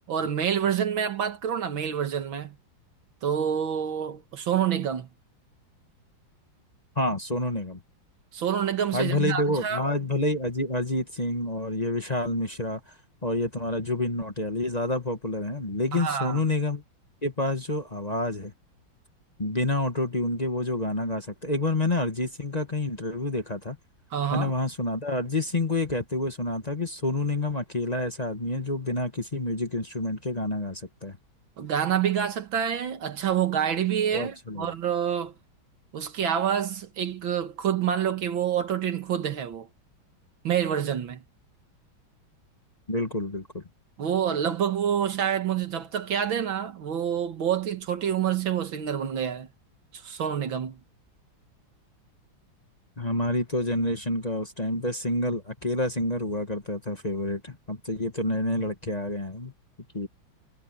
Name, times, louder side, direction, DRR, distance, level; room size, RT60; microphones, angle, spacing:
voice 1, 0.1-2.6 3.2-5.1 8.3-9.8 15.9-16.4 24.1-24.5 31.6-35.3 35.9-39.7 40.4-41.2 44.0-49.5 49.9-50.8, right 9 dB, 75° right, 2.3 m, -27 dB
voice 2, 6.9-7.8 8.9-12.9 13.2-16.8 17.2-18.5 19.4-23.8 24.3-31.2 34.1-34.7 42.9-43.6 53.0-59.5 59.9-60.1, left 2 dB, 20° left, 1.5 m, -28 dB
omnidirectional pair, 2.2 m